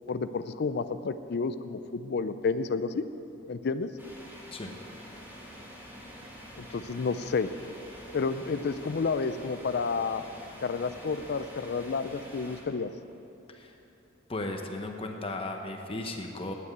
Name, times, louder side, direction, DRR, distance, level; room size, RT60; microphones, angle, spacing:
voice 1, 0.1-3.0 3.5-3.9 6.6-7.5 8.1-10.2 10.6-12.9, left 4 dB, 55° left, 12 dB, 0.4 m, -30 dB
sound 1, 4.0-12.6, equal, 10° right, 2.1 m, -47 dB
voice 2, 14.3-16.5, left 2 dB, 30° left, 3 dB, 0.8 m, -36 dB
9.6 x 8.5 x 9.3 m, 3.0 s
head